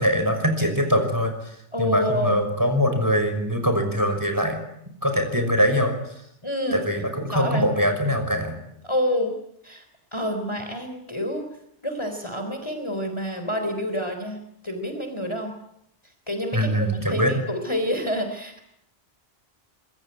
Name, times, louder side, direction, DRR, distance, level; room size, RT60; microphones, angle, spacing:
voice 1, 0.0-1.5 1.8-4.6 5.0-6.1 6.7-8.6 16.5-17.3, equal, 15° right, 6 dB, 5.8 m, -23 dB
voice 2, 1.7-2.4 6.4-6.8 7.3-7.7 8.8-9.3 9.6-9.8 10.1-11.4 11.8-15.6 16.3-16.7 17.1-18.6, equal, 25° left, 5 dB, 3.9 m, -28 dB
26.0 x 22.0 x 9.9 m, 0.76 s
omnidirectional pair, 1.2 m